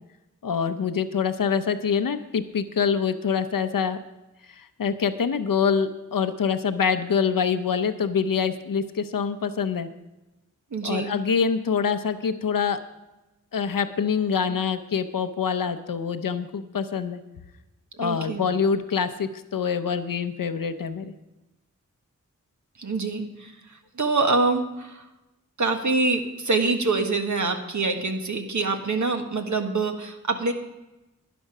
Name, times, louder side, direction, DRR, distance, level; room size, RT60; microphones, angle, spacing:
voice 1, 0.4-4.0 4.5-9.9 10.8-12.8 13.5-17.2 18.0-21.1, left 6 dB, 90° left, 10 dB, 0.7 m, -25 dB
voice 2, 10.7-11.1 18.0-18.4 22.8-23.5 23.9-25.0 25.6-30.5, right 3 dB, 60° right, 5 dB, 1.4 m, -25 dB
12.0 x 10.5 x 4.9 m, 1.0 s
wide cardioid pair, 70°, 32 cm